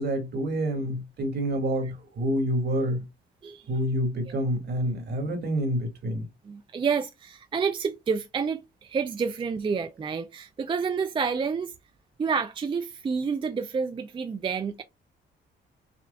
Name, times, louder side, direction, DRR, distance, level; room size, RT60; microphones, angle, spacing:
voice 1, 0.0-3.0 3.7-6.3, equal, 55° right, 1.8 m, -28 dB
voice 2, 6.4-11.7 12.2-14.8, right 5 dB, 25° right, 0.4 m, -29 dB
6.0 x 2.4 x 2.2 m
cardioid pair, 90°, 20 cm